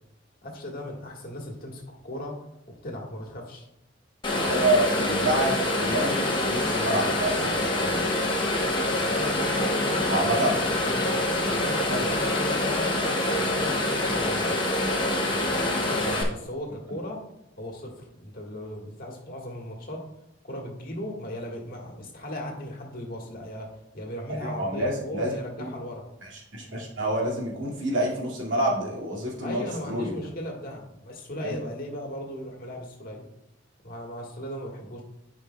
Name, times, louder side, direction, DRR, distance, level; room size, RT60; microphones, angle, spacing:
voice 1, 0.4-2.4 2.8-3.7 9.0-11.1 11.5-14.5 15.3-17.2 17.6-20.0 20.4-23.7 23.9-26.0 29.4-33.2 33.8-35.0, left 1 dB, 50° left, 0 dB, 1.5 m, -37 dB
sound 1, 4.2-16.2, left 1 dB, 25° left, 1.0 m, -26 dB
voice 2, 4.3-8.0 10.1-10.5 11.9-12.0 24.4-25.4 26.2-30.2 31.4-31.5, right 1 dB, 85° right, -3 dB, 2.1 m, -28 dB
11.5 x 5.1 x 2.2 m, 0.83 s
head